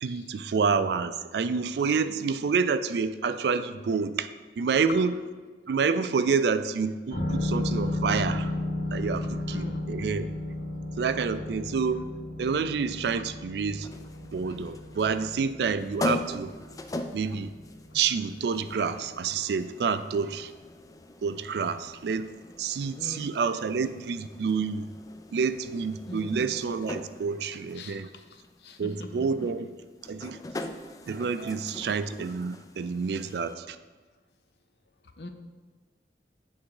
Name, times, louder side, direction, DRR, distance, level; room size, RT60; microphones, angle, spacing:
voice 1, 0.0-4.3 4.6-5.2 5.7-8.5 8.9-10.3 11.0-12.0 12.4-13.9 14.3-16.5 17.1-17.5 17.9-20.5 21.2-22.3 22.6-24.9 25.3-28.1 28.8-29.7 30.1-30.4 31.0-33.8, right 5 dB, 70° right, 12 dB, 0.4 m, -28 dB
sound 1, 7.1-18.7 19.0-19.1, left 2 dB, 50° left, 2.0 m, -34 dB
voice 2, 9.5-9.9 23.0-23.3 26.1-26.5 27.8-29.2 35.2-35.3, left 2 dB, 70° left, 6 dB, 0.6 m, -42 dB
sound 2, 13.8-33.5, left 1 dB, 20° left, 0.3 m, -41 dB
8.4 x 3.5 x 4.8 m, 1.4 s
head